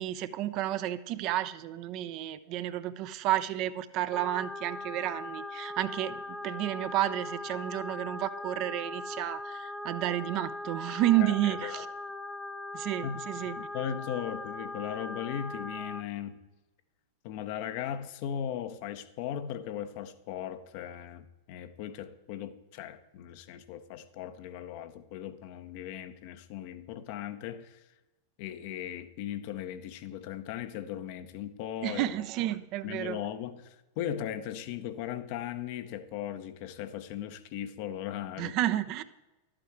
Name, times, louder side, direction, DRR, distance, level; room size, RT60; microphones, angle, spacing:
voice 1, 0.0-11.9 12.7-13.5 31.8-33.2 38.4-39.0, right 13 dB, 40° right, 0.5 m, -31 dB
sound 1, 4.1-16.0, left 2 dB, 5° left, 0.8 m, -40 dB
voice 2, 11.2-11.9 13.0-13.2 13.6-16.4 17.2-27.8 28.4-32.1 32.8-38.6, left 10 dB, 45° left, 0.7 m, -38 dB
12.0 x 8.8 x 4.5 m
figure-of-eight pair, 90°, 0 cm